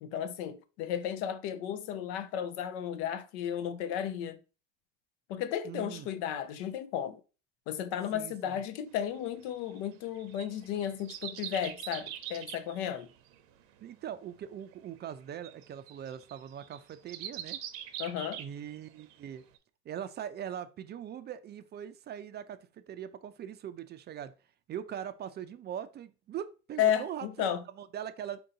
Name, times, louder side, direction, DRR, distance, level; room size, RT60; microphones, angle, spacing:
voice 1, 0.0-4.4 5.3-7.2 7.7-13.1 18.0-18.4 26.8-27.6, left 9 dB, 75° left, 0.6 m, -33 dB
voice 2, 5.6-6.1 8.1-8.6 13.8-17.6 18.4-19.4 19.9-24.3 24.7-27.5 27.8-28.4, right 9 dB, 35° right, 0.4 m, -41 dB
sound 1, 9.1-19.1 19.5-19.6, right 11 dB, 80° right, 0.7 m, -44 dB
4.5 x 2.7 x 3.8 m
supercardioid pair, 100°, 31 cm